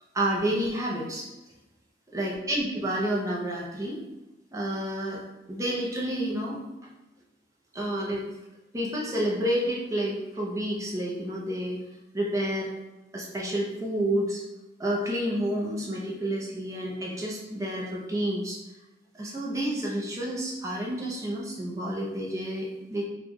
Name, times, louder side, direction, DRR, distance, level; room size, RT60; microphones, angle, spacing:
voice 1, 0.1-1.3 2.1-4.0 4.5-5.2 5.5-6.6 7.7-8.2 8.7-11.8 12.1-12.7 13.1-14.4 14.8-18.6 19.1-23.0, right 1 dB, 15° right, -4 dB, 0.6 m, -29 dB
3.0 x 2.5 x 3.5 m, 1.0 s
head